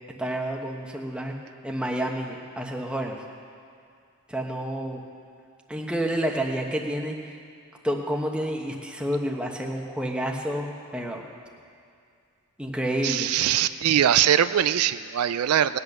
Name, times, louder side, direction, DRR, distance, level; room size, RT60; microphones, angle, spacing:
voice 1, 0.2-1.3 1.6-3.2 4.3-5.0 5.7-7.4 7.8-11.2 12.6-13.3, right 1 dB, 5° right, 1 dB, 1.1 m, -29 dB
voice 2, 13.0-15.8, right 10 dB, 80° right, 13 dB, 0.4 m, -22 dB
19.0 x 8.6 x 6.7 m, 2.3 s
head